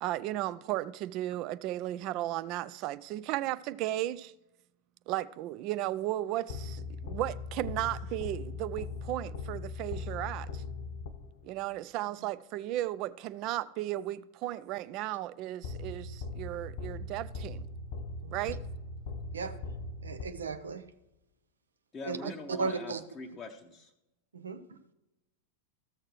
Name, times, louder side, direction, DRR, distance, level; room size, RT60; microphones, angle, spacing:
voice 1, 0.0-4.3 5.1-10.6 11.4-17.7 18.3-18.6 22.2-22.3, right 15 dB, 40° right, 0.3 m, -35 dB
sound 1, 6.5-11.6 15.6-20.8, left 3 dB, 50° left, 0.7 m, -40 dB
voice 2, 18.2-18.5 19.3-19.5 20.0-20.8 22.0-22.2 22.5-23.0 24.3-24.8, right 4 dB, 70° right, 0.7 m, -36 dB
voice 3, 21.9-23.9, left 3 dB, 15° left, 0.7 m, -43 dB
14.5 x 6.6 x 3.1 m
figure-of-eight pair, 90°, 0 cm